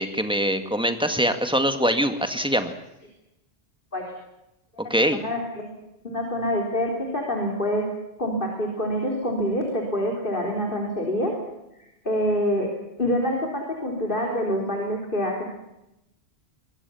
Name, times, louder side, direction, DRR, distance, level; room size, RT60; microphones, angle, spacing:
voice 1, 0.0-2.7 4.9-5.2, equal, 5° right, 7 dB, 1.9 m, -23 dB
voice 2, 4.8-5.7 6.0-7.9 8.2-11.3 12.0-12.7 13.0-15.4, equal, 50° left, 1 dB, 4.2 m, -26 dB
25.0 x 22.5 x 7.2 m, 0.90 s
omnidirectional pair, 1.1 m